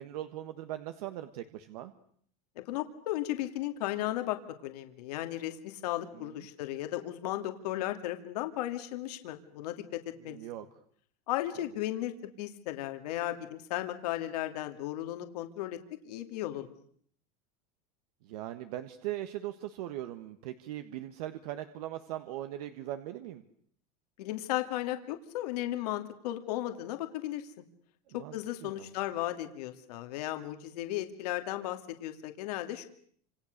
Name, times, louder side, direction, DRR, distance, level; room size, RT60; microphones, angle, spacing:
voice 1, 0.0-1.9 6.1-6.4 10.2-10.6 18.2-23.4 28.1-28.4 28.6-28.9, right 13 dB, 75° right, 9 dB, 1.6 m, -40 dB
voice 2, 2.6-10.4 11.3-12.1 12.4-15.8 16.0-16.7 24.2-27.5 28.1-32.9, left 14 dB, 80° left, 6 dB, 2.5 m, -35 dB
29.0 x 27.0 x 6.7 m, 0.62 s
supercardioid pair, 170°, 20 cm